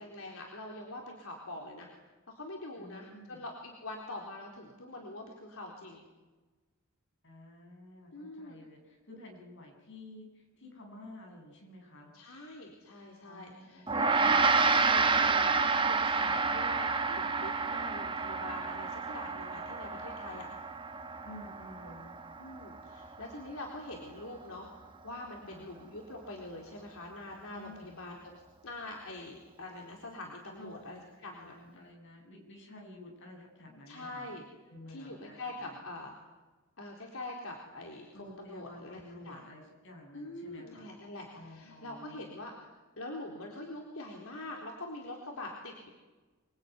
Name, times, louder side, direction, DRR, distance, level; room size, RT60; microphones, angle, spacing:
voice 1, 0.0-1.9 2.3-6.0 8.1-8.6 12.1-20.5 21.9-22.0 22.4-31.5 33.9-34.4 34.9-36.1 36.8-39.4 40.1-42.5 43.0-45.9, left 2 dB, 80° left, 0 dB, 4.0 m, -44 dB
voice 2, 2.8-3.5 7.2-12.1 13.2-14.4 21.2-22.1 25.4-25.7 27.5-27.9 30.6-30.8 31.2-34.3 34.7-35.8 38.1-40.9 41.3-42.2, left 1 dB, 60° left, 1 dB, 7.7 m, -51 dB
Gong, 13.9-23.4, right 4 dB, 25° right, 1.6 m, -29 dB
26.5 x 21.5 x 9.6 m, 1.2 s
head